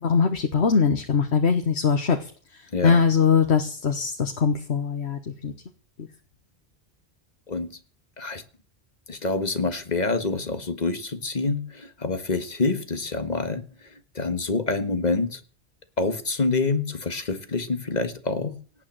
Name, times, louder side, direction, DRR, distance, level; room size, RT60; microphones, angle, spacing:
voice 1, 0.0-2.3 2.8-5.5, left 6 dB, 85° left, 5 dB, 1.5 m, -21 dB
voice 2, 2.7-3.0 7.5-7.8 8.2-8.4 9.1-15.4 16.0-18.6, left 3 dB, 40° left, 9 dB, 1.7 m, -27 dB
17.5 x 8.9 x 7.6 m, 0.42 s
omnidirectional pair, 1.1 m